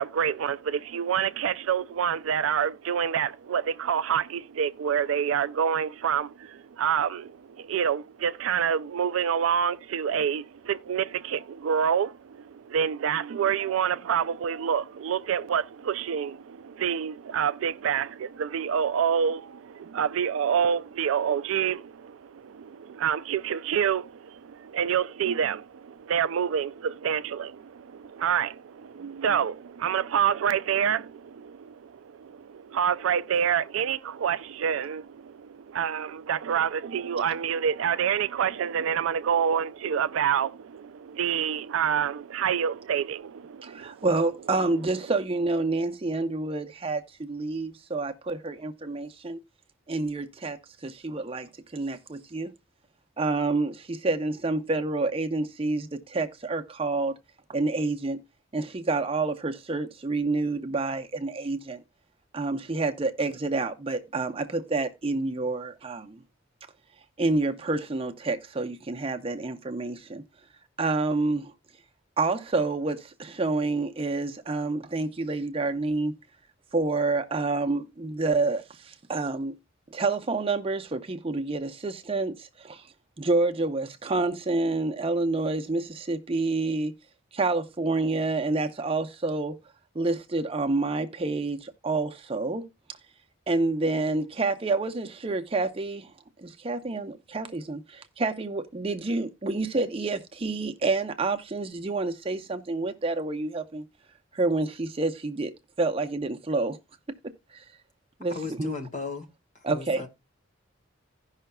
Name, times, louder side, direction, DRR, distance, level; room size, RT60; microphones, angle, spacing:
voice 1, 0.0-44.1, right 8 dB, 80° right, 0.4 m, -27 dB
voice 2, 43.6-49.4 49.9-52.5 53.2-57.2 57.5-58.2 58.5-61.8 62.3-66.2 67.2-70.2 70.8-71.5 72.2-76.1 76.7-79.6 79.9-82.8 83.2-86.9 87.3-89.6 89.9-92.7 93.5-96.1 96.4-103.8 104.3-106.8 107.2-107.6 108.2-108.7 109.6-110.0, right 3 dB, 30° right, 0.6 m, -28 dB
voice 3, 108.3-109.3 109.5-110.1, left 4 dB, 35° left, 1.5 m, -35 dB
16.5 x 5.6 x 2.2 m
head